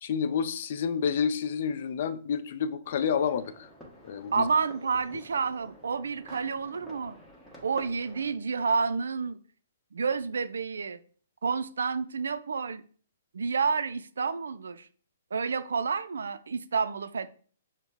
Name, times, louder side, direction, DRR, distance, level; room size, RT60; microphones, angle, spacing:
voice 1, 0.0-3.7 4.0-4.5, left 7 dB, 55° left, 0.4 m, -29 dB
sound 1, 2.8-8.3, equal, 5° left, 1.3 m, -50 dB
voice 2, 4.3-7.2 7.6-9.4 9.9-11.0 11.4-12.8 13.3-14.9 15.3-17.3, right 5 dB, 80° right, 0.3 m, -29 dB
6.2 x 2.1 x 3.4 m
hypercardioid pair, 130°, 0 cm